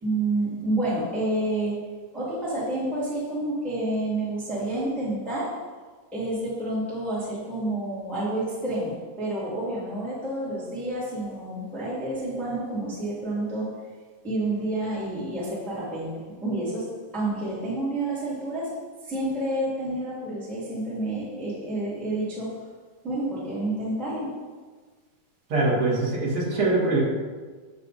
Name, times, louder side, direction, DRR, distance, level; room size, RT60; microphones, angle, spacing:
voice 1, 0.0-1.8 2.1-5.6 6.1-13.7 14.2-18.8 19.1-22.6 23.0-24.3, right 1 dB, ahead, -8 dB, 1.1 m, -29 dB
voice 2, 25.5-27.0, right 2 dB, 50° right, -5 dB, 1.9 m, -23 dB
6.8 x 6.5 x 4.1 m, 1.4 s
omnidirectional pair, 4.5 m